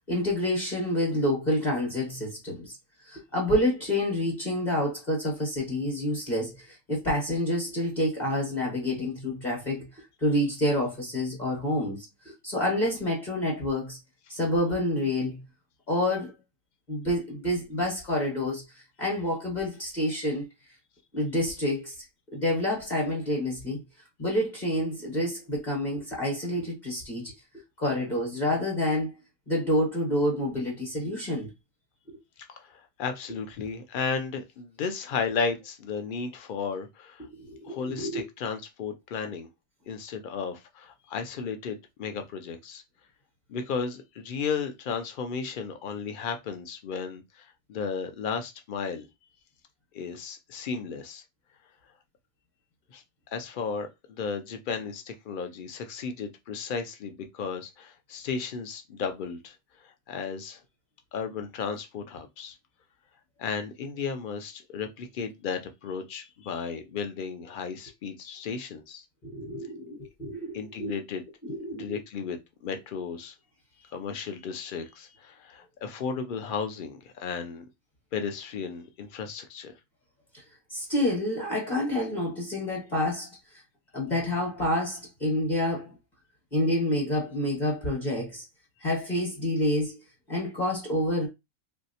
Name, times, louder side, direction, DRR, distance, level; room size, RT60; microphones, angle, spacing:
voice 1, 0.1-2.8 3.0-9.9 10.2-14.0 14.3-15.4 15.9-16.3 16.9-18.6 19.0-20.5 21.1-21.9 22.3-23.8 24.2-27.3 27.8-29.1 29.5-31.5 32.1-32.2 37.3-38.3 69.2-70.9 71.4-71.9 80.7-83.4 83.9-85.9 86.5-88.4 88.8-90.0 90.3-91.3, left 1 dB, 35° left, 1.1 m, -28 dB
voice 2, 32.5-37.3 37.6-39.5 39.9-42.8 43.5-49.1 49.9-51.2 52.9-53.0 53.3-59.6 59.8-60.6 61.1-62.5 63.4-69.0 70.5-71.2 71.8-72.4 72.6-73.3 73.9-77.6 78.1-79.7, left 5 dB, 65° left, 0.5 m, -34 dB
3.1 x 2.7 x 2.8 m
omnidirectional pair, 1.5 m